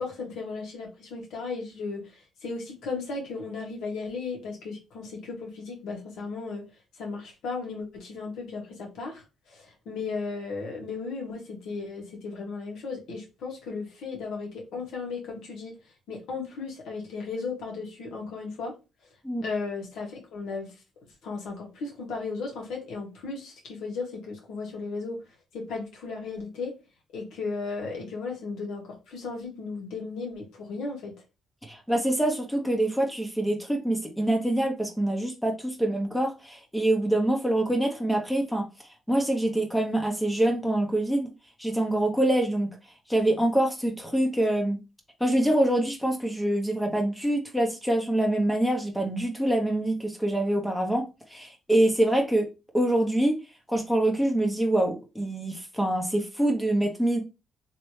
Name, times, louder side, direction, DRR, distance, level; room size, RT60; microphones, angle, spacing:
voice 1, 0.0-6.6 7.0-15.7 16.1-18.8 19.4-20.7 21.2-25.2 25.5-26.7 27.1-31.1, left 4 dB, 80° left, 1.7 m, -35 dB
voice 2, 31.7-38.6 39.1-41.3 41.6-42.7 43.1-44.8 45.2-52.5 52.7-53.4 53.7-57.2, right 1 dB, 5° left, 0.9 m, -25 dB
3.2 x 2.9 x 3.1 m
cardioid pair, 90°, 0 cm